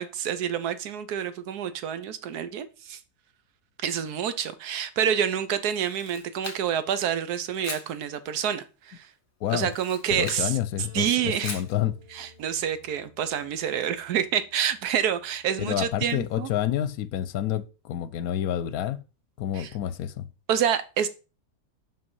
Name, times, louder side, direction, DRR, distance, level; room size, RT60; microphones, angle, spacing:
voice 1, 0.0-3.0 3.8-9.1 9.5-10.5 10.9-11.6 12.1-16.5 19.6-19.7 20.5-21.1, right 9 dB, 90° right, 1.3 m, -28 dB
Camera, 5.7-6.9 7.6-7.9 9.6-10.5 11.4-11.8, left 3 dB, 45° left, 1.9 m, -39 dB
voice 2, 9.4-9.7 10.1-12.0 15.6-19.0 19.4-20.3, left 11 dB, 75° left, 1.1 m, -28 dB
sound 1, 10.8-16.6, left 3 dB, 45° right, 2.1 m, -55 dB
5.6 x 5.6 x 5.5 m
omnidirectional pair, 1.6 m